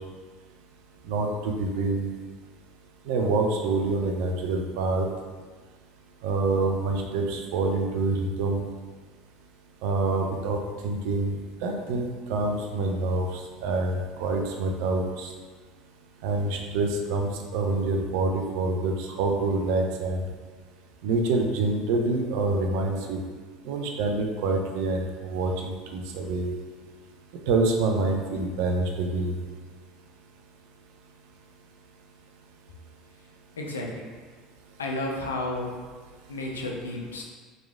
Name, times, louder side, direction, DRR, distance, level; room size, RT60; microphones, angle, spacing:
voice 1, 1.0-2.1 3.0-5.1 6.2-8.6 9.8-15.3 16.2-20.2 21.0-23.2 23.6-26.5 27.5-29.4, right 3 dB, 65° right, 2 dB, 0.3 m, -26 dB
voice 2, 33.6-34.0 34.8-35.8 36.3-37.2, left 2 dB, 85° left, 0 dB, 0.4 m, -32 dB
3.0 x 2.3 x 2.3 m, 1.4 s
hypercardioid pair, 70°, 0 cm